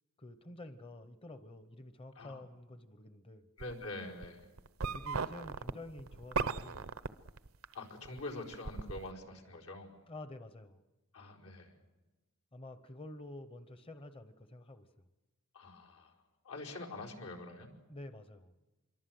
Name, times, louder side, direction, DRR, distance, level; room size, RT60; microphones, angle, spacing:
voice 1, 0.2-3.5 4.9-6.9 10.1-10.8 12.5-14.9 17.9-18.6, left 1 dB, 25° left, 9 dB, 0.8 m, -49 dB
voice 2, 3.6-4.4 7.7-9.9 11.1-11.7 15.5-16.1 16.4-17.7, left 2 dB, 85° left, -1 dB, 4.7 m, -45 dB
sound 1, 3.6-3.9 4.2-7.7 8.1-9.1, right 4 dB, 75° right, 0.8 m, -36 dB
26.0 x 23.0 x 7.7 m, 1.2 s
head